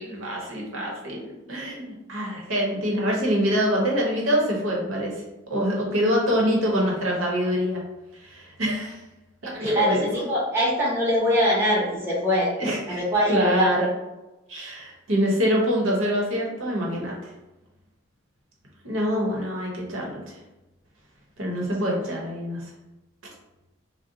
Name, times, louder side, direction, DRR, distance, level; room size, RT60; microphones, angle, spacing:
voice 1, 0.0-5.1 5.5-7.8 8.2-9.0 9.4-10.2 12.6-13.0 13.3-13.9 14.5-17.1 18.8-20.3 21.4-22.7, equal, 75° right, -2 dB, 0.8 m, -25 dB
voice 2, 9.6-12.5 12.9-13.7 22.0-22.1, equal, 10° right, -7 dB, 0.8 m, -23 dB
2.6 x 2.0 x 3.7 m, 1.0 s
head